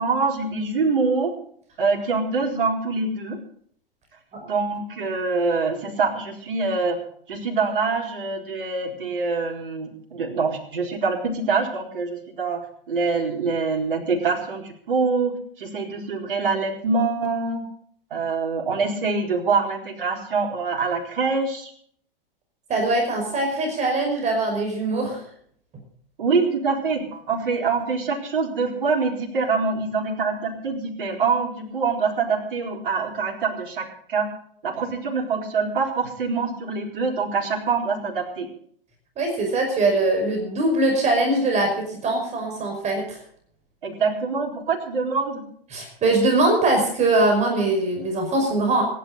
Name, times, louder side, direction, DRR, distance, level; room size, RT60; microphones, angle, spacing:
voice 1, 0.0-1.3 1.8-3.4 4.4-7.0 7.3-17.6 18.1-21.7 26.2-34.3 34.6-38.5 43.8-45.4, right 4 dB, 60° right, 1 dB, 4.3 m, -25 dB
voice 2, 22.7-25.2 39.2-43.2 45.7-48.8, right 2 dB, 25° right, 3 dB, 5.5 m, -22 dB
26.5 x 11.0 x 4.1 m, 0.62 s
figure-of-eight pair, 100°, 29 cm